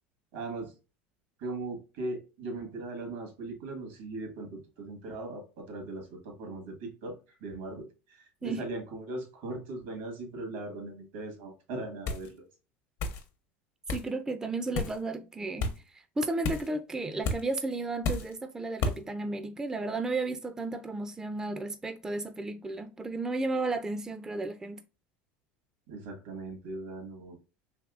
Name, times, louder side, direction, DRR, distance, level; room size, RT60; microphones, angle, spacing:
voice 1, 0.3-0.7 1.4-7.1 7.4-12.4 25.9-27.4, right 2 dB, 75° right, 1.5 m, -39 dB
sound 1, 12.1-12.3 13.0-13.2 13.9-14.1 14.7-15.0 15.6-15.8 16.4-16.7 17.2-17.4 18.0-18.3 18.8-19.0, left 3 dB, 60° left, 0.7 m, -31 dB
voice 2, 13.9-24.8, right 2 dB, 10° right, 0.3 m, -33 dB
3.5 x 2.9 x 2.4 m
supercardioid pair, 100°, 6 cm